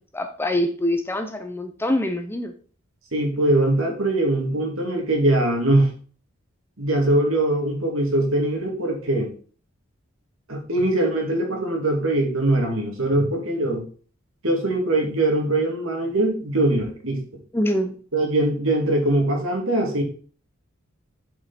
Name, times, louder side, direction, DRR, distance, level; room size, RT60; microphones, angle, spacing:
voice 1, 0.1-2.5 17.5-17.9, left 1 dB, 10° left, 7 dB, 0.6 m, -24 dB
voice 2, 3.1-5.9 6.8-9.3 10.5-13.8 14.4-17.2 18.1-20.0, right 1 dB, 65° right, 2 dB, 2.4 m, -22 dB
7.7 x 5.4 x 4.1 m, 0.42 s
head